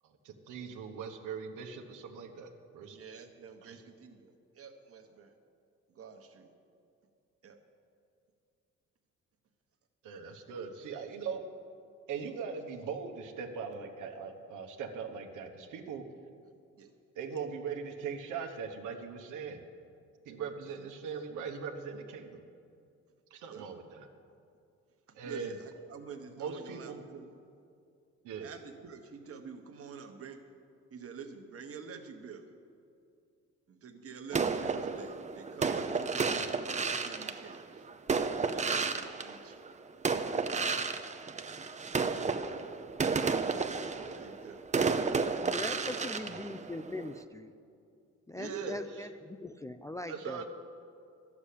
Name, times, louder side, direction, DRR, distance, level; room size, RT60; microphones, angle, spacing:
voice 1, 0.0-3.0 3.6-3.8 10.0-11.5 12.1-16.0 17.1-19.6 20.2-22.4 23.3-24.1 25.1-25.6 26.4-27.0 28.2-28.5 36.1-36.5 45.5-46.3 48.4-48.8 50.1-50.5, right 6 dB, 85° right, 5 dB, 1.1 m, -40 dB
voice 2, 2.9-5.3 5.9-6.5 7.4-7.6 16.5-16.9 20.7-20.8 23.5-23.7 25.1-27.3 28.4-30.4 30.9-32.5 33.7-37.9 38.5-39.6 43.9-44.6 48.3-48.8, right 6 dB, 50° right, 6 dB, 1.3 m, -48 dB
sound 1, 34.3-39.7 40.0-47.2, right 4 dB, 25° right, 0.6 m, -32 dB
voice 3, 45.4-47.5 48.3-50.4, left 1 dB, 10° left, 8 dB, 0.4 m, -41 dB
11.5 x 7.2 x 8.4 m, 2.5 s
cardioid pair, 90°, 30 cm